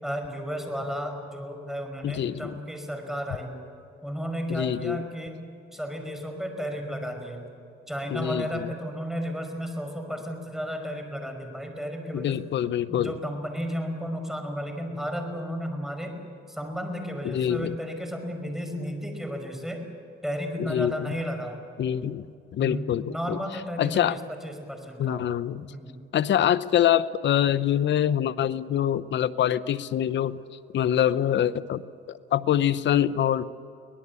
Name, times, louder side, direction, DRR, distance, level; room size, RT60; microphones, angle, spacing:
voice 1, 0.0-3.6 4.0-7.4 7.9-12.4 12.9-16.2 16.5-19.8 20.2-21.6 21.9-22.1 22.6-25.2 25.6-26.0, equal, ahead, 5 dB, 5.4 m, -33 dB
voice 2, 2.0-2.5 4.5-5.0 8.1-8.7 12.1-13.1 17.2-17.7 20.6-21.1 21.8-22.2 22.5-23.4 23.8-24.1 25.0-25.7 26.1-30.4 30.7-31.8 32.1-33.4, left 10 dB, 65° left, 16 dB, 0.9 m, -25 dB
24.0 x 19.0 x 8.3 m, 2.6 s
cardioid pair, 90°, 20 cm